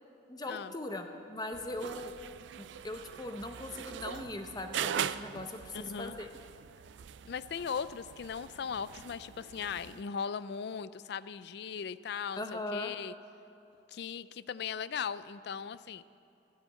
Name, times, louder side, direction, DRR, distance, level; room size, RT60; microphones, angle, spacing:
voice 1, 0.3-2.1 2.6-6.3 12.4-12.9, left 2 dB, 20° left, 6 dB, 0.7 m, -40 dB
sound 1, 1.5-10.0, right 8 dB, 75° right, 0.4 m, -41 dB
voice 2, 5.7-6.2 7.2-13.1 13.9-16.0, left 6 dB, 60° left, 16 dB, 0.4 m, -38 dB
12.5 x 10.0 x 8.4 m, 2.6 s
head